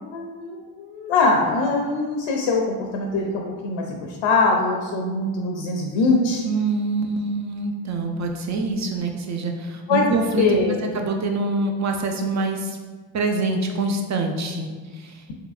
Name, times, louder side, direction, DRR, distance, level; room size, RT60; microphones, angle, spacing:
voice 1, 0.1-6.4 9.9-10.1 10.4-11.0, left 3 dB, 70° left, 0 dB, 0.5 m, -22 dB
voice 2, 6.4-12.8 13.1-14.7 14.9-15.2, right 3 dB, 35° right, 4 dB, 0.5 m, -25 dB
3.6 x 2.8 x 2.3 m, 1.4 s
supercardioid pair, 55°, 48 cm